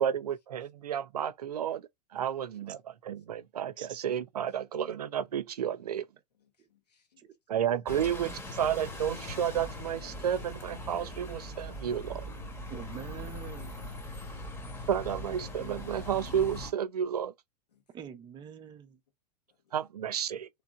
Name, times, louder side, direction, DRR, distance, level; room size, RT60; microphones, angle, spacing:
voice 1, 0.0-1.8 2.1-6.0 7.5-12.2 14.9-17.3 19.7-20.5, right 9 dB, 65° right, 0.6 m, -31 dB
voice 2, 6.4-7.3 14.1-14.9 17.7-17.8 19.5-19.8, left 7 dB, 70° left, 1.5 m, -70 dB
voice 3, 7.2-7.6 12.7-13.9 17.9-19.0, right 8 dB, 20° right, 0.7 m, -45 dB
Bus, 7.9-16.7, left 1 dB, 10° left, 1.2 m, -41 dB
3.6 x 3.3 x 4.4 m
figure-of-eight pair, 100°, 21 cm